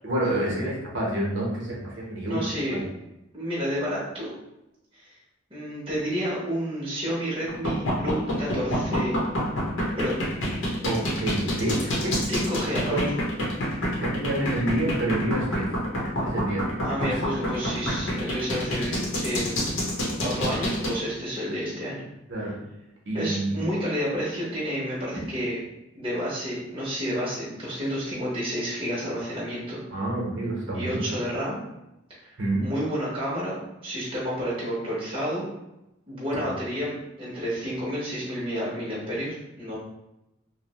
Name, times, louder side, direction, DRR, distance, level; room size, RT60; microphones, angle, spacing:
voice 1, 0.0-2.8 10.8-12.2 12.7-13.1 14.0-15.7 16.2-16.6 17.0-17.1 22.3-22.5 23.1-23.6 29.9-31.1 32.4-32.7 36.4-36.6, right 1 dB, 65° right, -3 dB, 0.8 m, -28 dB
voice 2, 2.2-2.8 3.3-4.3 4.9-5.1 5.5-9.1 10.0-10.2 12.3-13.0 16.8-19.7 20.2-22.1 23.1-25.6 25.9-30.0 30.7-31.6 32.2-32.3 32.6-35.5 36.1-39.7, equal, 25° right, -7 dB, 0.7 m, -30 dB
sound 1, 7.5-20.9, equal, 75° left, 0.7 m, -27 dB
2.9 x 2.0 x 2.8 m, 0.91 s
head